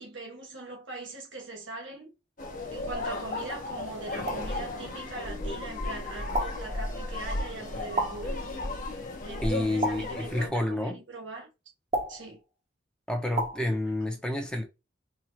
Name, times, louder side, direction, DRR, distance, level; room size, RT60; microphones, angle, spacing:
voice 1, 0.0-2.1 2.7-8.4 9.2-11.5 12.1-12.4, right 3 dB, 80° right, 1.4 m, -41 dB
sound 1, 2.4-10.5, left 2 dB, 45° left, 0.9 m, -35 dB
sound 2, 4.3-4.6 6.3-6.7 8.0-8.4 9.8-10.3 11.9-12.3 13.4-13.7, right 1 dB, 35° right, 0.7 m, -31 dB
voice 2, 9.4-11.0 13.1-14.6, left 1 dB, 5° left, 0.7 m, -29 dB
4.4 x 2.4 x 2.8 m
head